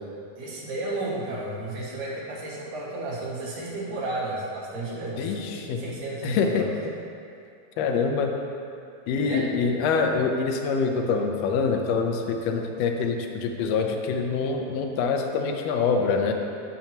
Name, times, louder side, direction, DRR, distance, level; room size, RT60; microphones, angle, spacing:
voice 1, 0.4-6.7 9.1-9.4, right 2 dB, 85° right, -7 dB, 3.3 m, -33 dB
voice 2, 5.2-5.8 6.2-6.9 7.8-8.3 9.1-16.3, left 5 dB, 80° left, 3 dB, 1.5 m, -25 dB
12.5 x 5.8 x 2.9 m, 2.5 s
omnidirectional pair, 3.7 m